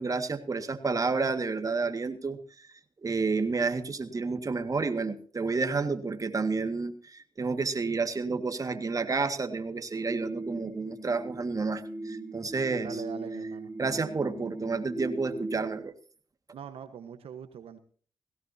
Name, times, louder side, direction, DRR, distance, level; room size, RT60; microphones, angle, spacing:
voice 1, 0.0-2.7 3.0-13.0 13.8-15.9, right 4 dB, 35° right, 8 dB, 1.9 m, -30 dB
sound 1, 10.0-15.8, right 2 dB, 15° right, 3.9 m, -39 dB
voice 2, 12.8-13.7 16.5-17.8, right 8 dB, 70° right, 9 dB, 1.2 m, -42 dB
17.5 x 17.0 x 2.8 m, 0.43 s
cardioid pair, 60°, 10 cm